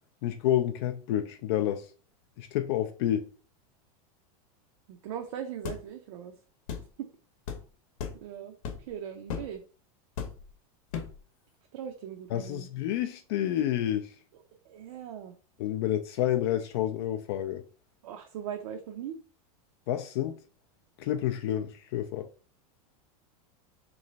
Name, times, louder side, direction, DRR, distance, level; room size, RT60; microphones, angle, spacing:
voice 1, 0.2-1.8 2.4-3.3 12.3-14.1 15.6-17.6 19.9-20.4 21.0-22.3, left 12 dB, 45° left, 0.4 m, -29 dB
voice 2, 4.9-6.4 7.0-7.1 8.2-9.6 11.7-12.7 14.6-15.4 18.0-19.2, right 9 dB, 55° right, 0.6 m, -39 dB
sound 1, 5.7-5.8 6.7-6.9 7.5-7.6 8.0-8.2 8.6-8.9 9.3-9.5 10.2-10.5 10.9-11.2, left 7 dB, 60° left, 0.8 m, -36 dB
3.2 x 3.1 x 3.9 m
supercardioid pair, 170°, 19 cm